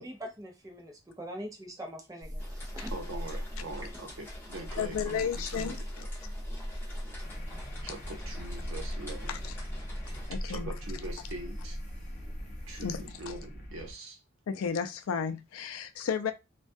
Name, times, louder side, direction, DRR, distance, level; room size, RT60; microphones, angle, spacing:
voice 1, 0.0-2.9, equal, 15° right, 0.5 m, -43 dB
sound 1, 2.2-13.1, equal, 40° right, 1.1 m, -39 dB
sound 2, 2.4-10.3, left 1 dB, 10° left, 0.9 m, -49 dB
voice 2, 2.9-5.8 7.8-9.3 10.5-11.7 12.7-14.1, right 2 dB, 80° right, 0.7 m, -42 dB
voice 3, 4.8-5.8 10.3-10.7 12.8-13.0 14.5-16.3, left 7 dB, 90° left, 0.4 m, -32 dB
sound 3, 7.2-13.9, equal, 35° left, 0.6 m, -46 dB
2.3 x 2.2 x 2.5 m
head